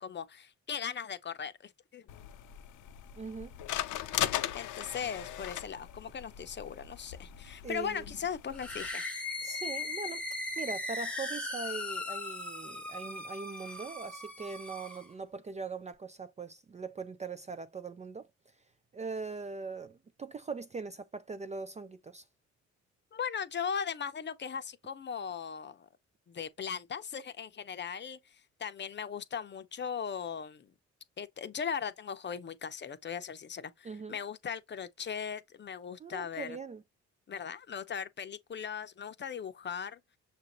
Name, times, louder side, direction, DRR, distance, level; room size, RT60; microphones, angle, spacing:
voice 1, 0.0-2.1 4.5-9.1 23.1-25.9 26.3-30.7 31.2-36.6 37.3-40.0, left 7 dB, 35° left, 0.7 m, -38 dB
sound 1, 2.1-8.9, left 12 dB, 80° left, 0.6 m, -38 dB
voice 2, 3.1-3.5 7.6-8.0 9.4-10.2 10.6-18.3 18.9-22.2 33.8-34.2 36.0-36.8, right 4 dB, 25° right, 0.4 m, -41 dB
sound 2, 8.5-15.1, left 2 dB, 5° left, 0.9 m, -38 dB
6.6 x 2.6 x 3.0 m
cardioid pair, 90°, 30 cm